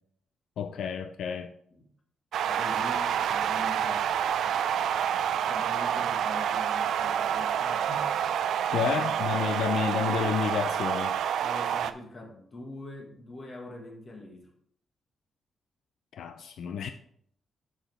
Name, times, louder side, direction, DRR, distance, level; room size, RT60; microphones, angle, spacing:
voice 1, 0.6-1.5 8.7-11.2 16.1-16.9, left 8 dB, 75° left, 0.4 m, -30 dB
sound 1, 2.3-11.9, right 9 dB, 85° right, 0.3 m, -28 dB
voice 2, 2.5-4.1 4.8-8.4 8.7-9.5 11.4-14.5, left 2 dB, 30° left, 1.6 m, -43 dB
7.7 x 6.2 x 3.4 m
wide cardioid pair, 170°, 0 cm